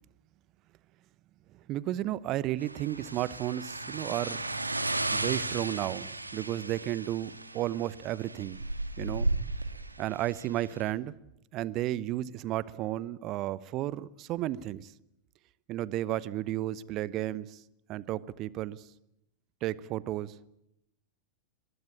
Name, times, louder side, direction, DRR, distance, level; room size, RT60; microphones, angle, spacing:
voice 1, 1.7-4.4 5.1-8.6 9.0-9.3 10.0-11.1 11.5-14.9 15.7-17.6 17.9-18.8 19.6-20.3, right 14 dB, 35° right, 0.9 m, -33 dB
sound 1, 2.6-10.9, right 2 dB, 85° right, 1.8 m, -35 dB
23.0 x 21.0 x 8.7 m
figure-of-eight pair, 90°, 0 cm